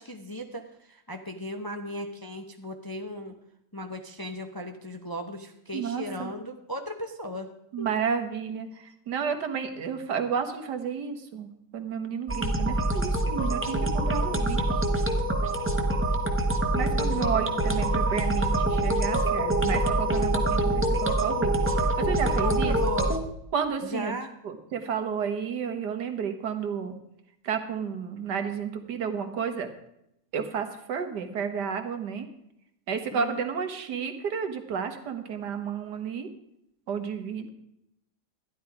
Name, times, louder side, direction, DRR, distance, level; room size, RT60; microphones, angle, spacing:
voice 1, 0.0-3.3 3.7-7.5 7.8-7.9 16.8-17.3 22.3-23.1 23.8-24.3 33.1-33.4, left 1 dB, 20° left, 4 dB, 0.6 m, -36 dB
voice 2, 5.7-6.3 7.7-14.8 16.7-21.5 21.8-22.8 23.5-24.2 24.4-26.9 27.4-29.7 30.3-32.3 32.9-36.3 36.9-37.5, right 6 dB, 90° right, 7 dB, 1.9 m, -31 dB
sound 1, 12.3-23.2, right 1 dB, 10° right, 0.9 m, -25 dB
12.5 x 10.5 x 4.8 m, 0.78 s
omnidirectional pair, 1.7 m